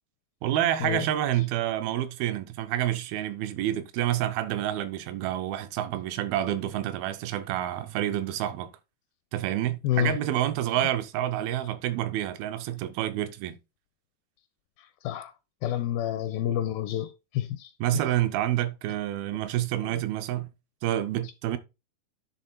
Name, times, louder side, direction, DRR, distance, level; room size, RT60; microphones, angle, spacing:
voice 1, 0.4-8.7 9.3-13.6 17.8-20.5 20.8-21.6, right 12 dB, 85° right, 2.4 m, -28 dB
voice 2, 9.8-10.2 15.0-15.3 15.6-17.7, left 12 dB, 80° left, 2.2 m, -28 dB
10.5 x 3.6 x 4.1 m
omnidirectional pair, 4.5 m